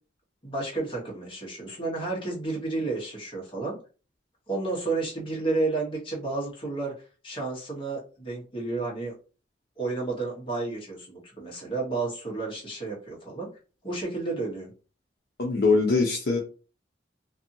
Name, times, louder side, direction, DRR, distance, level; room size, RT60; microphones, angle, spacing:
voice 1, 0.4-3.8 4.5-6.9 7.2-9.1 9.8-13.5 13.8-14.7, right 3 dB, 30° left, -3 dB, 1.1 m, -31 dB
voice 2, 15.4-16.4, left 3 dB, 60° left, -1 dB, 0.6 m, -22 dB
2.6 x 2.6 x 2.6 m, 0.35 s
head